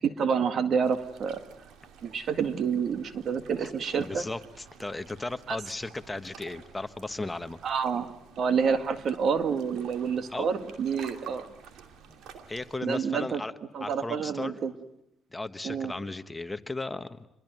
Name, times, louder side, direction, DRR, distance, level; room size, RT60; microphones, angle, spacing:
voice 1, 0.0-1.4 2.0-4.3 5.5-5.6 7.6-8.1 8.4-11.5 12.8-13.4 13.7-14.7 15.6-15.9, right 6 dB, 60° right, 10 dB, 1.9 m, -28 dB
sound 1, 0.8-12.8, right 7 dB, 80° right, 2.7 m, -51 dB
voice 2, 4.0-7.6 10.3-10.5 12.5-13.5 13.8-14.5 15.3-17.3, left 2 dB, 15° left, 10 dB, 1.2 m, -35 dB
26.5 x 22.0 x 9.3 m, 0.82 s
cardioid pair, 90°, 0 cm